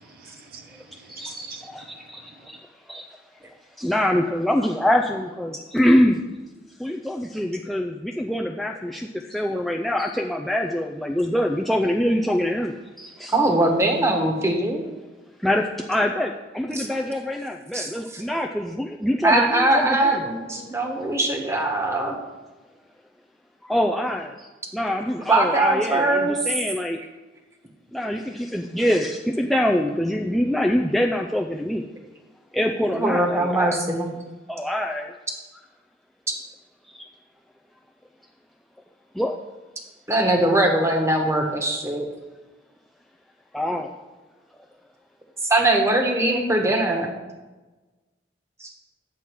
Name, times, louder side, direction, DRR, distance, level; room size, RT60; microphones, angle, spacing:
voice 1, 0.0-2.1 2.4-2.5, right 5 dB, 50° right, 0.6 m, -45 dB
voice 2, 1.1-2.6 2.9-3.1 3.8-6.2 6.8-13.4 15.4-20.2 23.6-27.0 27.9-31.8 32.5-33.8 34.5-35.1 36.9-37.1 39.1-39.4 43.5-43.9, left 1 dB, ahead, 0.4 m, -24 dB
voice 3, 13.3-14.8 16.7-16.9 17.7-18.2 19.2-22.2 25.3-26.3 32.9-34.1 40.1-42.1 45.5-47.1 48.6-48.7, right 2 dB, 15° right, 1.3 m, -21 dB
9.8 x 7.4 x 4.6 m
head